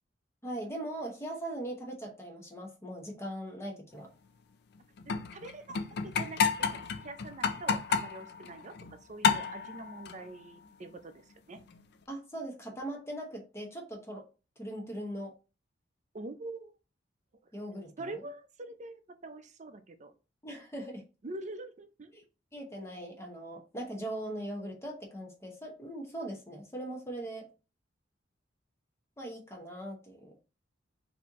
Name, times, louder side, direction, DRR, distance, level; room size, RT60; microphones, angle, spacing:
voice 1, 0.4-4.1 12.1-14.2 14.6-15.3 17.5-18.1 20.4-21.0 22.1-22.2 22.5-27.5 29.2-30.3, right 1 dB, 15° left, 1 dB, 0.9 m, -40 dB
sound 1, 5.0-8.9 9.2-10.3 11.5-11.8, left 5 dB, 60° left, 0.4 m, -31 dB
voice 2, 5.1-8.8 9.1-11.2 11.5-11.6 16.1-16.7 18.0-20.1 21.2-22.1, right 2 dB, 40° right, 9 dB, 0.5 m, -44 dB
4.3 x 2.8 x 3.5 m, 0.32 s
head